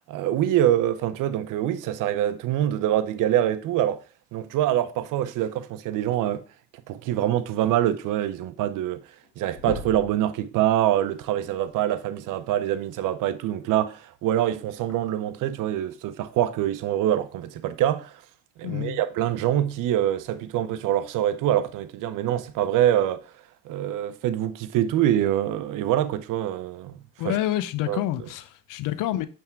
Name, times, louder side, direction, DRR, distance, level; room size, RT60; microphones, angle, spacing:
voice 1, 0.1-4.0 4.3-6.4 6.9-9.0 9.4-18.2 18.6-23.2 23.6-27.0 27.2-27.4 27.9-28.3, right 12 dB, 90° right, 0.6 m, -25 dB
sound 1, 9.0-9.3 9.5-10.2 11.9-12.0 13.9-14.0 14.9-15.0, left 5 dB, 65° left, 1.3 m, -36 dB
voice 2, 18.6-19.0 27.2-29.3, left 13 dB, 90° left, 0.6 m, -28 dB
8.6 x 3.5 x 4.5 m
supercardioid pair, 40°, 31 cm